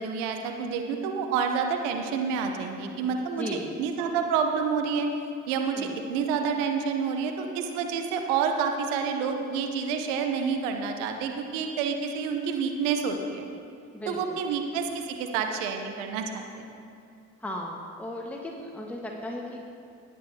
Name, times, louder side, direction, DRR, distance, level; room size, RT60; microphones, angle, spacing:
voice 1, 0.0-5.1 5.5-13.5 14.1-16.7, right 6 dB, 80° right, 4 dB, 0.8 m, -28 dB
voice 2, 13.9-14.4 17.4-19.6, left 1 dB, 5° left, -1 dB, 1.4 m, -36 dB
19.5 x 8.5 x 2.8 m, 2.5 s
hypercardioid pair, 40°, 37 cm